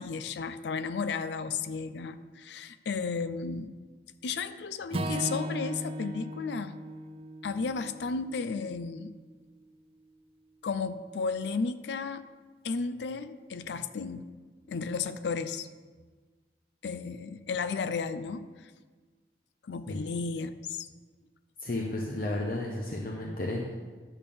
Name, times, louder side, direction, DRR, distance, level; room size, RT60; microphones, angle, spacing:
voice 1, 0.0-3.8 4.2-6.7 7.4-9.1 10.6-12.2 12.6-14.2 14.7-15.7 16.8-18.7 19.7-20.9, left 5 dB, 75° left, 12 dB, 0.4 m, -33 dB
Acoustic guitar / Strum, 4.9-9.2, right 1 dB, 30° right, 0.5 m, -37 dB
voice 2, 21.6-23.7, left 1 dB, 55° left, -1 dB, 0.8 m, -33 dB
10.5 x 3.6 x 6.8 m, 1.4 s
head